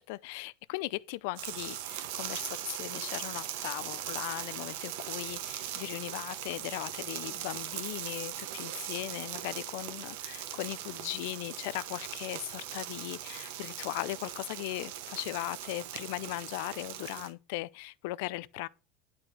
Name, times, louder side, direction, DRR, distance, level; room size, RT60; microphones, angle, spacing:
voice 1, 0.0-18.7, left 19 dB, 75° left, 0.5 m, -38 dB
sound 1, 1.4-17.3, right 11 dB, 85° right, 1.1 m, -40 dB
11.0 x 4.3 x 6.3 m
cardioid pair, 160°, 0 cm